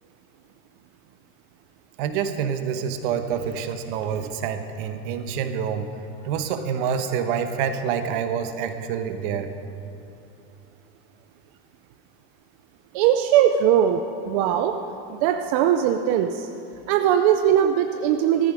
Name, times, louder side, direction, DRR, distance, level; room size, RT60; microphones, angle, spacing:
voice 1, 2.0-5.9 6.2-9.5, right 7 dB, 50° right, 8 dB, 1.1 m, -27 dB
voice 2, 12.9-14.0 14.3-14.7 15.2-16.5 16.9-18.5, right 10 dB, 35° right, 5 dB, 0.4 m, -20 dB
14.5 x 14.0 x 4.9 m, 2.8 s
supercardioid pair, 170°, 33 cm